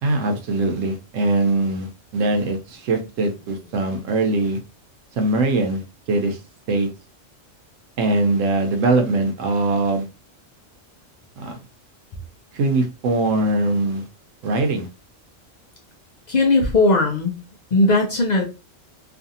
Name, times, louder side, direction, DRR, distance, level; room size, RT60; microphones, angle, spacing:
voice 1, 0.0-4.6 5.2-5.8 6.1-6.4 6.7-6.9 8.0-10.1 11.4-11.6 12.5-14.0 14.4-14.9, right 2 dB, 75° right, 5 dB, 1.0 m, -21 dB
voice 2, 16.3-17.4 17.7-18.4, left 2 dB, 65° left, 1 dB, 0.4 m, -18 dB
2.7 x 2.5 x 2.6 m, 0.30 s
omnidirectional pair, 1.3 m